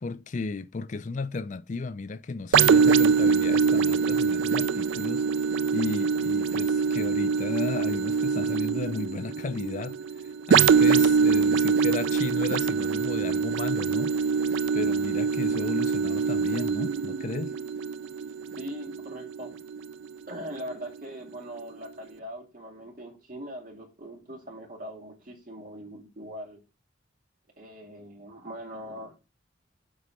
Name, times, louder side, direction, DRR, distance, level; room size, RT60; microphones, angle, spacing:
voice 1, 0.0-5.3 5.7-14.1 14.7-17.5, left 3 dB, 40° left, 0.4 m, -34 dB
sound 1, 2.5-20.1 20.6-20.7, right 5 dB, 80° right, 0.4 m, -24 dB
voice 2, 18.6-19.6 20.3-26.6 27.6-29.2, equal, 45° right, 2.2 m, -41 dB
7.7 x 3.9 x 5.9 m
head